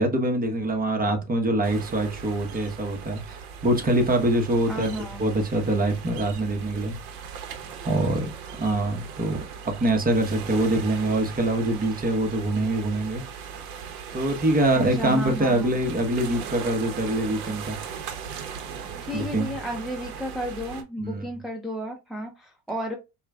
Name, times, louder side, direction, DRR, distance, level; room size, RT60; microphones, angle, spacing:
voice 1, 0.0-7.0 7.8-8.3 8.6-9.4 9.7-13.2 14.1-17.8 19.1-19.5 21.0-21.3, right 1 dB, 20° right, 1.1 m, -24 dB
sound 1, 1.6-20.8, right 7 dB, 75° right, 1.0 m, -38 dB
voice 2, 4.7-5.2 14.7-15.8 19.1-22.9, equal, ahead, 0.7 m, -32 dB
4.9 x 2.4 x 2.4 m
supercardioid pair, 90°, 44 cm